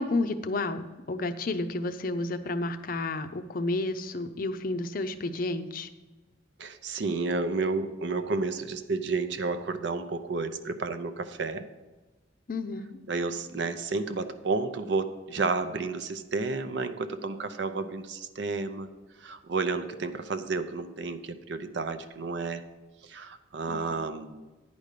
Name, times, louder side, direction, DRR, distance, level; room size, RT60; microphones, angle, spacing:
voice 1, 0.0-5.9 12.5-13.0 23.7-23.9, left 2 dB, 45° left, 9 dB, 0.5 m, -31 dB
voice 2, 6.6-11.6 13.1-18.9 19.2-22.6 23.0-24.4, right 3 dB, 65° right, 10 dB, 0.6 m, -31 dB
9.8 x 5.2 x 6.7 m, 1.2 s
head